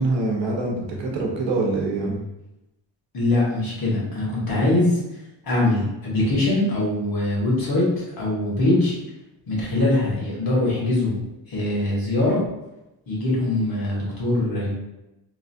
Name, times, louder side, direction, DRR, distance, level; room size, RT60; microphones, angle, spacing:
voice 1, 0.0-2.2, right 2 dB, 70° right, -1 dB, 0.8 m, -24 dB
voice 2, 3.1-8.9 9.5-11.2 11.5-12.4 13.1-14.7, left 2 dB, 50° left, -5 dB, 1.1 m, -22 dB
3.0 x 2.4 x 2.6 m, 0.94 s
wide cardioid pair, 145°, 46 cm